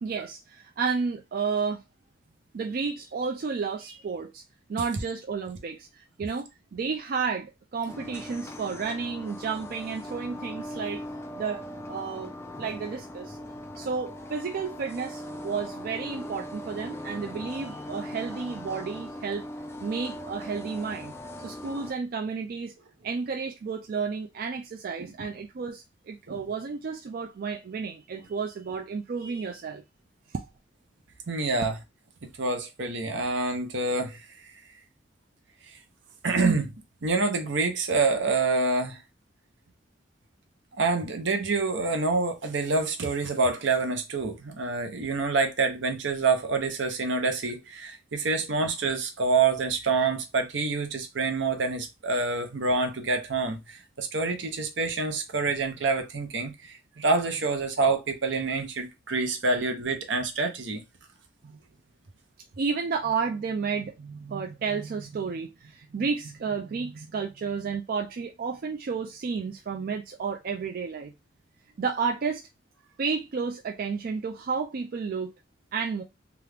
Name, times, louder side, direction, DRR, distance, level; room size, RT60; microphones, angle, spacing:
voice 1, 0.0-1.8 2.5-4.4 4.7-11.0 11.3-11.6 11.9-13.4 13.8-19.5 19.8-21.1 21.4-22.7 23.0-29.8 61.4-61.6 62.6-71.1 71.8-72.5 73.0-75.3 75.7-76.0, right 5 dB, 50° right, 0.4 m, -32 dB
sound 1, 7.9-21.9, left 1 dB, 15° left, 0.4 m, -40 dB
voice 2, 31.3-31.8 32.4-34.3 36.2-36.7 37.0-39.0 40.8-60.8, right 3 dB, 80° right, 0.8 m, -27 dB
3.0 x 2.4 x 3.3 m
head